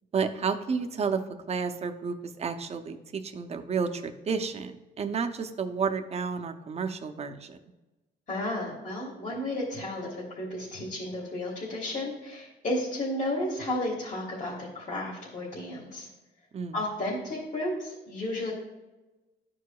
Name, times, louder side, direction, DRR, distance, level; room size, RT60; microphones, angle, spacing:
voice 1, 0.1-1.2 1.5-7.6 16.5-16.7, right 5 dB, 35° right, 6 dB, 0.6 m, -31 dB
voice 2, 8.3-16.1 16.7-18.5, left 1 dB, 40° left, -6 dB, 1.7 m, -33 dB
12.0 x 4.7 x 2.3 m, 1.1 s
cardioid pair, 125°, 19 cm